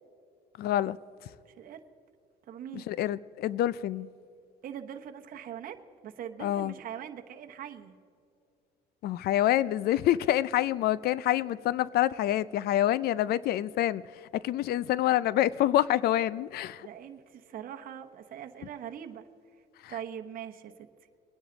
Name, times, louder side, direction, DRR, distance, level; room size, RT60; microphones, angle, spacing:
voice 1, 0.6-1.0 2.7-4.1 6.4-6.7 9.0-14.0 14.3-16.9 19.8-19.9, left 13 dB, 65° left, 0.4 m, -27 dB
voice 2, 2.5-2.9 4.6-5.8 6.0-7.9 16.8-19.3 19.9-20.9, right 9 dB, 55° right, 1.0 m, -42 dB
21.5 x 10.0 x 3.9 m
cardioid pair, 110°, 17 cm